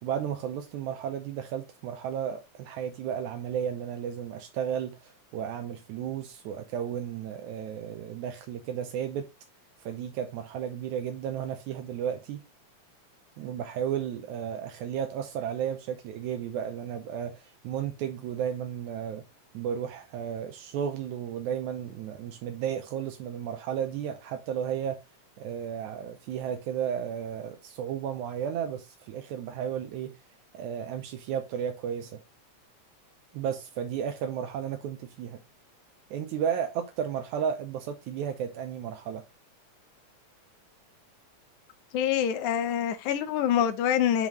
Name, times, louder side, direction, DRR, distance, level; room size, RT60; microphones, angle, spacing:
voice 1, 0.0-9.3 9.8-12.5 13.4-19.2 19.5-25.0 25.4-30.2 30.5-32.2 33.3-35.4 36.1-39.2, right 8 dB, 80° right, 2.1 m, -33 dB
voice 2, 41.9-44.3, left 9 dB, 80° left, 2.1 m, -25 dB
10.5 x 3.7 x 3.0 m
omnidirectional pair, 3.4 m